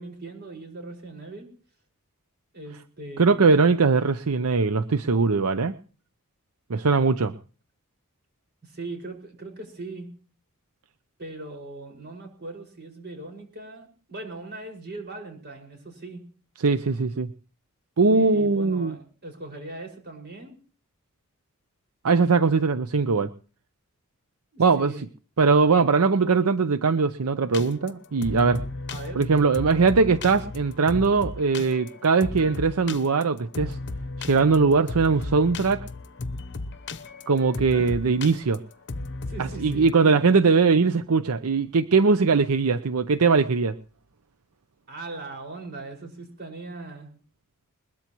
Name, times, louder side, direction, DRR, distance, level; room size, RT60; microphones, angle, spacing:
voice 1, 0.0-1.5 2.5-3.5 8.6-10.1 11.2-16.2 18.1-20.5 24.5-25.0 28.9-29.2 37.6-37.9 39.3-40.3 44.9-47.1, right 2 dB, 50° right, 3 dB, 5.5 m, -40 dB
voice 2, 3.2-5.8 6.7-7.3 16.6-17.3 18.0-18.9 22.0-23.3 24.6-24.9 25.4-28.6 29.2-33.8 34.2-35.8 37.3-38.6 39.4-43.8, right 4 dB, 85° right, 12 dB, 0.7 m, -21 dB
sound 1, 27.5-39.9, left 3 dB, 50° left, 0.9 m, -35 dB
21.5 x 21.0 x 3.0 m, 0.40 s
head